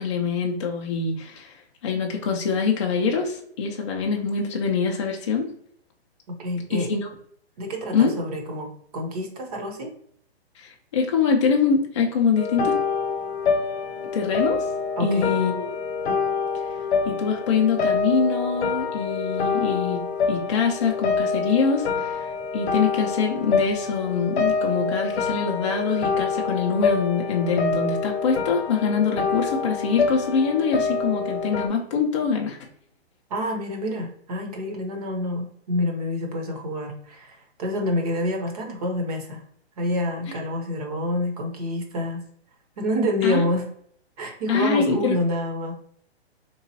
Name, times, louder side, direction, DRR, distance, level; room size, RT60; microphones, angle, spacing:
voice 1, 0.0-1.6 1.8-5.5 6.7-7.0 7.9-8.1 10.6-12.8 14.1-14.7 15.0-15.5 17.1-22.2 22.5-32.6 43.2-43.4 44.5-45.1, left 5 dB, 30° left, 0 dB, 0.4 m, -24 dB
voice 2, 6.3-6.9 7.6-9.9 15.0-15.3 33.3-39.4 39.8-42.2 42.8-43.7 44.2-45.7, left 1 dB, 35° right, 3 dB, 0.7 m, -27 dB
sound 1, 12.4-31.7, left 5 dB, 80° left, 0.6 m, -26 dB
3.6 x 3.0 x 2.7 m, 0.65 s
hypercardioid pair, 155°, 32 cm